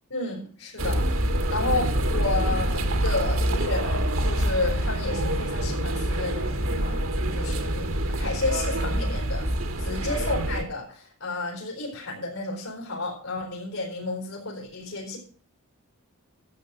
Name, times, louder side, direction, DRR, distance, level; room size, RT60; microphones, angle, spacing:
voice 1, 0.1-1.1 1.5-9.5 9.8-15.2, left 3 dB, 80° left, -2 dB, 4.7 m, -31 dB
sound 1, 0.8-10.6, right 1 dB, 65° right, 1.8 m, -26 dB
12.5 x 7.7 x 7.0 m, 0.43 s
head